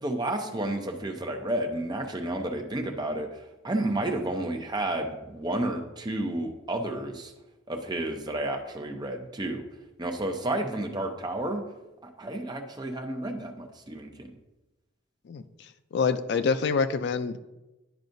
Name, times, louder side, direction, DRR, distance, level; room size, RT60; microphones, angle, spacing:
voice 1, 0.0-3.3 3.6-7.3 7.7-9.6 10.0-11.6 12.2-14.3, right 1 dB, 20° right, 4 dB, 0.7 m, -31 dB
voice 2, 15.9-17.4, left 5 dB, 60° left, 11 dB, 0.4 m, -26 dB
10.5 x 4.8 x 2.6 m, 1.0 s
head